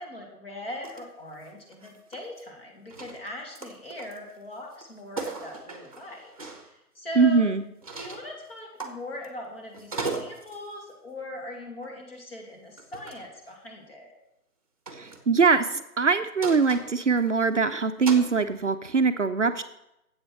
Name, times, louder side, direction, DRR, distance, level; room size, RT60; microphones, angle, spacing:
voice 1, 0.0-6.3 6.6-7.5 8.0-14.1, left 1 dB, 40° left, 0 dB, 2.8 m, -40 dB
sound 1, 0.8-1.0 1.3-2.5 2.9-4.3 4.7-4.8 5.2-6.7 7.8-8.3 8.8-9.5 9.7-10.7 11.8-12.0 12.8-13.3 14.9-15.2 16.4-17.6 18.1-18.3, right 3 dB, 25° right, 1.0 m, -37 dB
voice 2, 7.2-7.6 14.9-19.6, right 5 dB, 50° right, 8 dB, 0.6 m, -22 dB
8.4 x 8.0 x 6.4 m, 0.85 s
hypercardioid pair, 180°, 46 cm